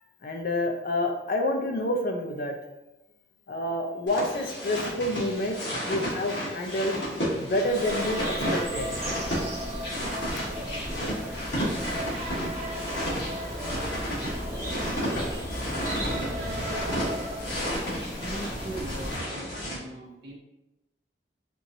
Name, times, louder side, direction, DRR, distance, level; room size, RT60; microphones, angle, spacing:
voice 1, 0.2-2.5 3.5-7.0 7.4-8.9 13.0-13.2, left 1 dB, 50° left, 3 dB, 0.5 m, -28 dB
sound 1, 4.1-19.8, equal, 75° left, 1.4 m, -32 dB
sound 2, 7.3-19.2, equal, 15° right, 0.8 m, -37 dB
sound 3, 7.8-17.4, right 1 dB, 35° right, 0.4 m, -39 dB
voice 2, 15.7-17.2 18.2-20.4, right 1 dB, 60° right, -2 dB, 0.8 m, -41 dB
4.4 x 2.6 x 2.7 m, 0.96 s
head